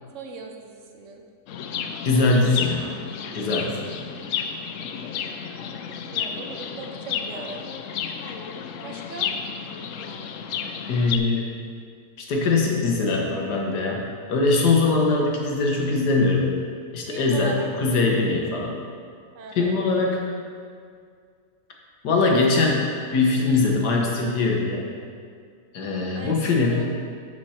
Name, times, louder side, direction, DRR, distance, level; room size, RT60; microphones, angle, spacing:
voice 1, 0.1-1.2 3.3-4.0 6.1-7.7 8.8-9.3 17.1-17.7 19.3-20.1 26.1-26.4 26.7-27.0, right 3 dB, 55° right, 3 dB, 1.0 m, -39 dB
Chirp tweet, 1.5-11.2, left 7 dB, 70° left, 0.8 m, -32 dB
voice 2, 2.0-2.9 3.3-3.8 10.9-11.5 12.2-14.0 14.3-16.5 16.9-17.5 17.8-18.8 19.5-20.2 22.0-24.9 25.7-26.8, left 3 dB, 90° left, 0 dB, 1.7 m, -21 dB
11.0 x 4.5 x 4.3 m, 2.1 s
omnidirectional pair, 1.7 m